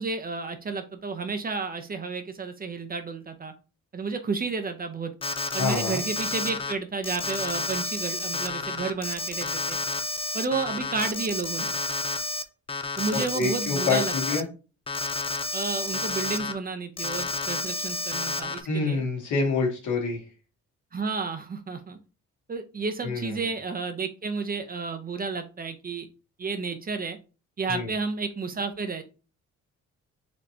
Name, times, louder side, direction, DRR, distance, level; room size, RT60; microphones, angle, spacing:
voice 1, 0.0-3.5 3.9-5.1 5.5-9.8 10.3-11.7 13.0-14.4 15.5-19.0 20.9-22.0 22.5-26.1 26.4-27.2 27.6-29.0, right 4 dB, 30° right, 7 dB, 0.6 m, -31 dB
Alarm, 5.2-6.7 7.0-12.4 12.7-14.4 14.9-16.5 17.0-18.6, left 3 dB, 20° left, 0.5 m, -30 dB
voice 2, 5.6-6.0 13.1-14.5 18.6-20.2 23.0-23.4 27.7-27.9, left 4 dB, 75° left, 0 dB, 1.7 m, -27 dB
4.3 x 3.1 x 2.8 m, 0.33 s
cardioid pair, 90°, 30 cm